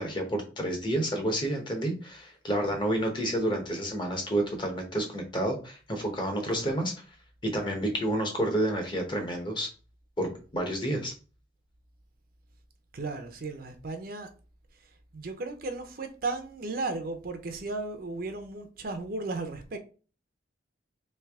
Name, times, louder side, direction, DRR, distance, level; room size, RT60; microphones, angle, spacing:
voice 1, 0.0-6.9 7.4-9.7 10.2-11.1, right 1 dB, 25° left, 0.9 m, -29 dB
voice 2, 12.9-14.3 15.1-19.8, right 3 dB, 50° right, 0.6 m, -35 dB
3.3 x 3.2 x 3.5 m
head